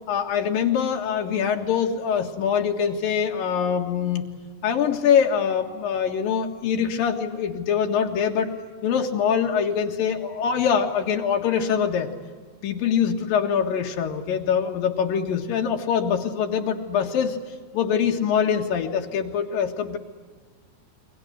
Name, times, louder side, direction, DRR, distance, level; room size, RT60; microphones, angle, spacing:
voice 1, 0.1-4.3 4.6-8.5 8.8-12.1 12.6-17.4 17.7-20.0, left 7 dB, 85° left, 1 dB, 3.4 m, -24 dB
29.0 x 23.0 x 8.0 m, 1.6 s
omnidirectional pair, 4.0 m